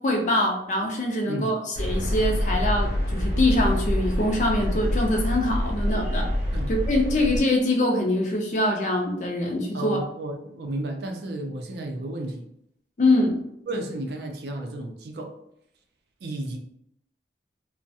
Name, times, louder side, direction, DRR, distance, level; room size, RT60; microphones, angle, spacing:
voice 1, 0.0-6.3 6.7-10.0 13.0-13.4, left 1 dB, 40° left, 1 dB, 0.4 m, -24 dB
sound 1, 1.7-7.4, equal, 85° left, 0.7 m, -26 dB
voice 2, 9.7-12.4 13.7-15.3 16.2-16.6, right 1 dB, 70° right, 3 dB, 0.4 m, -32 dB
2.3 x 2.1 x 2.7 m, 0.74 s
head